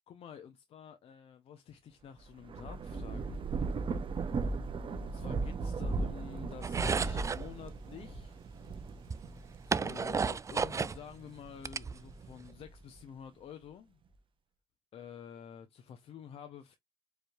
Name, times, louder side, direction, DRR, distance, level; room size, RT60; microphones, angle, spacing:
voice 1, 0.1-3.5 5.0-8.4 9.7-14.0 14.9-16.8, left 8 dB, 75° left, 0.8 m, -49 dB
Thunder / Rain, 2.2-11.1 11.6-13.0, right 4 dB, 55° right, 1.0 m, -37 dB
sound 1, 6.6-7.5 8.6-8.7 9.1-11.0 11.4-12.4, right 5 dB, 30° right, 0.4 m, -33 dB
4.8 x 3.2 x 2.6 m
cardioid pair, 65°, 10 cm